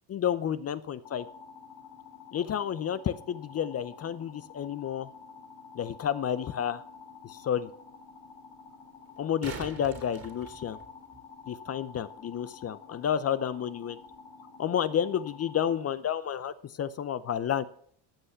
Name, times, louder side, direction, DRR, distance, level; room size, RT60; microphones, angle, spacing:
voice 1, 0.1-1.3 2.3-5.1 5.7-6.8 7.2-7.7 9.2-10.8 11.5-14.0 14.6-17.6, left 9 dB, 30° left, 15 dB, 0.6 m, -30 dB
sound 1, 1.0-15.8, left 5 dB, 75° left, 3.3 m, -50 dB
sound 2, 6.2-6.3 9.1-11.2 14.1-14.2, right 5 dB, 30° right, 2.3 m, -43 dB
14.5 x 5.5 x 6.7 m, 0.63 s
supercardioid pair, 95°, 47 cm